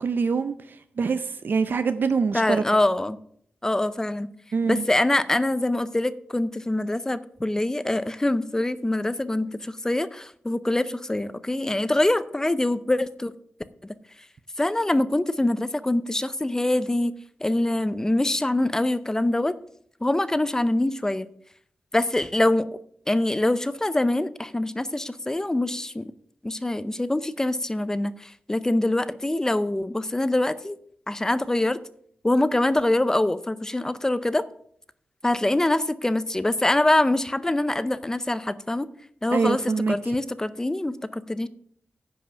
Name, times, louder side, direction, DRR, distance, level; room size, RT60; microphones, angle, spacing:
voice 1, 0.0-2.6 4.5-4.8 39.3-40.2, right 5 dB, 65° right, 11 dB, 0.5 m, -25 dB
voice 2, 2.3-3.2 3.6-4.3 4.6-13.3 14.6-17.1 17.4-19.5 20.0-21.3 21.9-22.6 23.1-26.1 26.4-30.8 31.1-31.8 32.2-34.4 35.2-38.9 39.2-39.6 39.9-41.5, left 1 dB, 15° left, 15 dB, 0.5 m, -24 dB
10.5 x 5.6 x 6.8 m, 0.64 s
wide cardioid pair, 120°, 4 cm